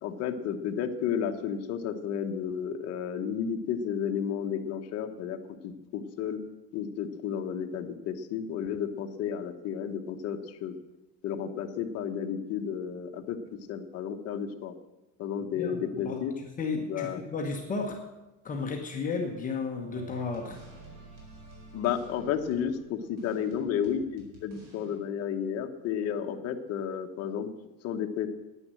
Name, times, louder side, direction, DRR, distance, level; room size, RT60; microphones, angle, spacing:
voice 1, 0.0-5.4 5.6-6.4 6.7-10.8 11.2-13.4 13.7-14.7 15.2-16.3 16.7-17.2 21.7-27.5 27.8-28.3, left 8 dB, 45° left, 5 dB, 1.1 m, -32 dB
voice 2, 15.6-16.3 16.6-18.0 18.4-20.6, left 4 dB, 20° left, 1 dB, 1.1 m, -33 dB
sound 1, 19.9-25.0, right 2 dB, 55° right, 4.8 m, -50 dB
9.9 x 9.7 x 7.7 m, 1.0 s
cardioid pair, 170°, 35 cm